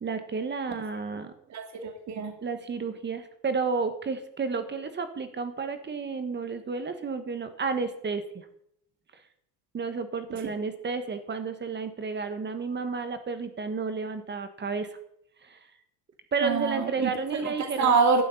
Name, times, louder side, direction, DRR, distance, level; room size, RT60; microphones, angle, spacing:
voice 1, 0.0-1.3 2.4-8.4 9.7-14.9 15.4-15.6 16.3-18.0, right 4 dB, 25° right, 10 dB, 1.3 m, -31 dB
voice 2, 1.5-2.3 16.4-17.1 17.4-18.2, right 5 dB, 40° right, 5 dB, 2.6 m, -25 dB
12.0 x 6.5 x 9.1 m, 0.73 s
cardioid pair, 130°, 43 cm